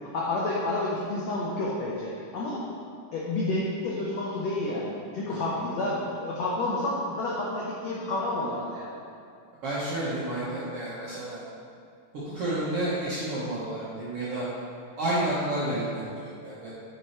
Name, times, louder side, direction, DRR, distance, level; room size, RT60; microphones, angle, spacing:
voice 1, 0.0-2.6 3.1-8.9, left 2 dB, 85° left, -5 dB, 1.5 m, -30 dB
voice 2, 9.6-11.4 12.2-14.5 15.0-16.7, right 1 dB, 60° right, -9 dB, 1.6 m, -30 dB
8.8 x 5.3 x 4.4 m, 2.4 s
omnidirectional pair, 4.3 m